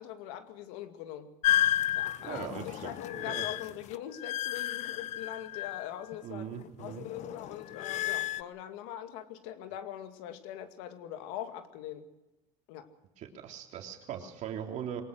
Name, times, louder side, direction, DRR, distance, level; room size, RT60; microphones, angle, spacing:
voice 1, 0.0-1.3 2.0-2.5 2.8-6.4 6.8-12.1 12.7-12.9, left 11 dB, 85° left, 8 dB, 2.3 m, -42 dB
sound 1, 1.4-6.2 6.5-8.4, left 13 dB, 50° left, 0.8 m, -32 dB
voice 2, 2.2-3.7 6.2-7.1 13.2-15.0, right 9 dB, 55° right, 3 dB, 3.2 m, -40 dB
22.5 x 19.5 x 6.3 m, 1.0 s
supercardioid pair, 115°, 15 cm